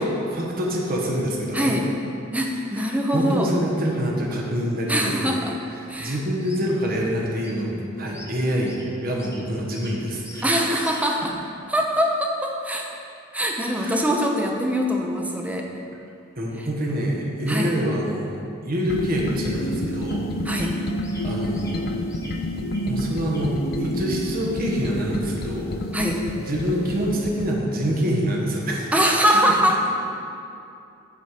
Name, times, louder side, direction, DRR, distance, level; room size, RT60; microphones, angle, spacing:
voice 1, 0.0-1.8 2.7-5.4 6.0-10.8 13.7-14.0 16.4-20.2 21.2-21.9 22.8-25.8 26.4-29.1, equal, 45° right, -2 dB, 1.1 m, -26 dB
voice 2, 1.5-1.9 2.3-3.5 4.9-5.6 5.9-6.2 10.4-11.3 11.7-12.9 13.3-15.7 16.6-16.7 17.5-17.7 20.4-20.8 25.9-26.2 28.9-29.9, equal, 5° right, 0 dB, 0.6 m, -23 dB
sound 1, 6.4-6.6 7.4-7.6 8.1-8.3 8.6-8.8 9.2-9.4 9.7-9.9 10.2-10.5 10.8-11.0 20.1-20.2 20.6-20.7 21.0-21.2 21.5-21.7 22.1-22.3 22.7-22.8 23.3-23.8 24.2-24.4, left 1 dB, 15° left, 0.9 m, -44 dB
sound 2, 18.9-27.5, left 1 dB, 50° left, 0.4 m, -29 dB
7.4 x 4.2 x 5.0 m, 2.6 s
head